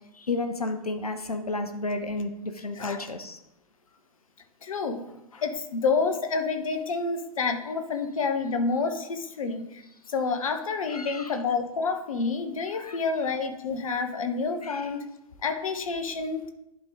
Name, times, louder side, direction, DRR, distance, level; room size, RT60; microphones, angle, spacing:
voice 1, 0.1-3.4 10.9-11.4 12.7-13.0 14.6-14.9, left 2 dB, 85° left, 7 dB, 0.6 m, -32 dB
voice 2, 4.6-5.0 5.3-9.8 10.1-15.0 15.4-16.5, left 4 dB, 65° left, 6 dB, 1.0 m, -28 dB
11.0 x 3.8 x 3.6 m, 0.87 s
figure-of-eight pair, 100°, 19 cm